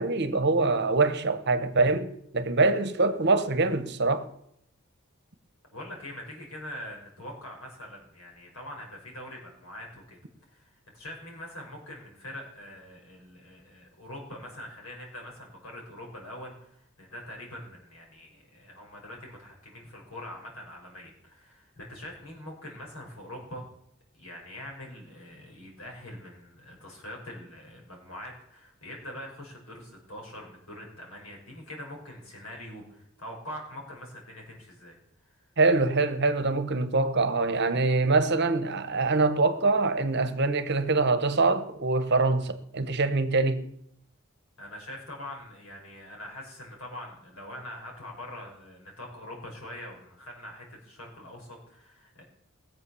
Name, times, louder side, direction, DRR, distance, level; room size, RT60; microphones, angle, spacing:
voice 1, 0.0-4.3 35.6-43.6, right 3 dB, 50° right, 1.2 m, -24 dB
voice 2, 5.7-10.2 10.5-23.7 24.1-34.9 44.6-52.2, left 1 dB, 75° left, 5.4 m, -43 dB
19.0 x 7.6 x 7.1 m
head